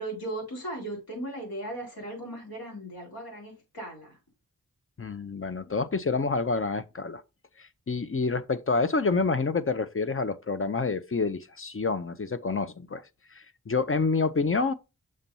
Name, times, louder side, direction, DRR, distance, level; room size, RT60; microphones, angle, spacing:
voice 1, 0.0-4.2, right 1 dB, 85° left, 4.2 m, -37 dB
voice 2, 5.0-7.2 7.6-13.0 13.7-14.7, left 4 dB, 35° left, 0.7 m, -28 dB
6.5 x 2.9 x 5.3 m
cardioid pair, 45°, 36 cm